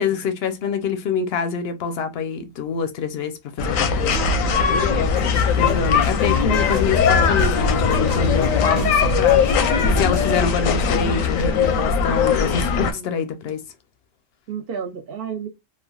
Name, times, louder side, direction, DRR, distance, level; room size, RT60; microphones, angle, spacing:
voice 1, 0.0-4.2 5.6-9.5 10.0-13.6, left 6 dB, 65° left, 0.7 m, -26 dB
sound 1, 3.6-12.9, left 5 dB, 90° left, 1.0 m, -19 dB
voice 2, 4.5-4.9 8.7-9.0 11.7-12.0 12.9-13.1 14.5-15.5, right 7 dB, 60° right, 0.7 m, -33 dB
sound 2, 5.0-10.5, right 3 dB, 75° right, 1.1 m, -40 dB
3.2 x 2.2 x 2.2 m
omnidirectional pair, 1.3 m